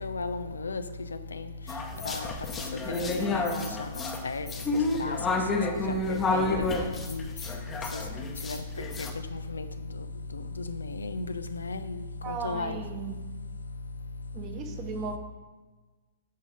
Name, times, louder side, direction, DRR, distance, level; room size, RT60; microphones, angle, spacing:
voice 1, 0.0-0.8 2.1-2.3 2.9-3.5 4.2-4.5 5.0-5.2 6.1-6.7 7.1-7.2 7.9-8.0 8.4-8.6 9.5-9.6 10.7-11.3 11.5-11.8 12.4-12.8, left 3 dB, 85° left, 0.5 m, -34 dB
sound 1, 1.7-9.1, left 3 dB, 20° left, 0.9 m, -30 dB
voice 2, 12.2-13.1 14.3-15.2, right 6 dB, 30° right, 1.1 m, -36 dB
9.5 x 3.7 x 4.9 m
hypercardioid pair, 120°, 0 cm